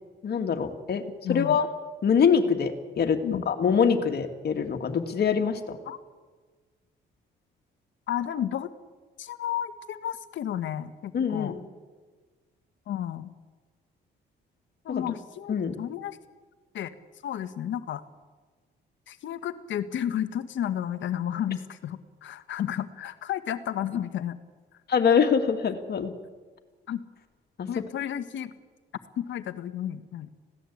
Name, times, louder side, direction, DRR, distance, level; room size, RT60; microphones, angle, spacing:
voice 1, 0.2-1.0 1.3-1.7 2.0-5.8 11.1-11.6 14.9-15.1 15.5-15.8 24.9-26.1 27.6-27.7 28.0-28.1, left 6 dB, 55° left, 5 dB, 2.5 m, -24 dB
voice 2, 1.2-1.6 3.2-3.4 5.9-6.0 8.1-8.7 9.2-11.6 12.9-13.3 14.8-16.2 16.7-16.9 17.2-18.0 19.1-24.4 26.9-27.0 27.7-28.5 29.2-30.3, left 10 dB, 70° left, 11 dB, 1.6 m, -32 dB
26.0 x 17.0 x 8.7 m, 1.4 s
cardioid pair, 90°, 20 cm